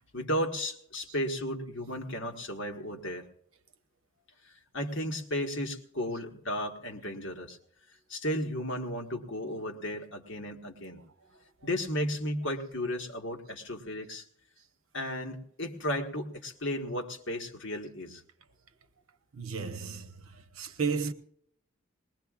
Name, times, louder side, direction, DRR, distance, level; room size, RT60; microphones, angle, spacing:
voice 1, 0.1-3.2 4.4-7.6 8.1-11.0 11.6-14.2 14.9-18.2, equal, 60° left, 1.6 m, -34 dB
voice 2, 19.3-20.3 20.6-21.1, right 5 dB, 85° right, 1.0 m, -33 dB
21.0 x 20.0 x 2.5 m
head